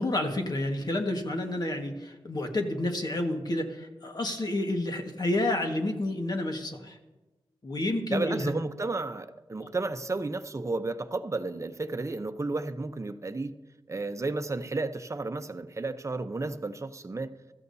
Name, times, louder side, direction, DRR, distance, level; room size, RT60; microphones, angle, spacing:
voice 1, 0.0-7.0 7.6-8.5, left 1 dB, 45° left, 1.6 m, -30 dB
voice 2, 8.1-13.5 13.9-17.3, right 3 dB, 35° right, 0.8 m, -32 dB
16.0 x 13.5 x 2.8 m
cardioid pair, 55°, 9 cm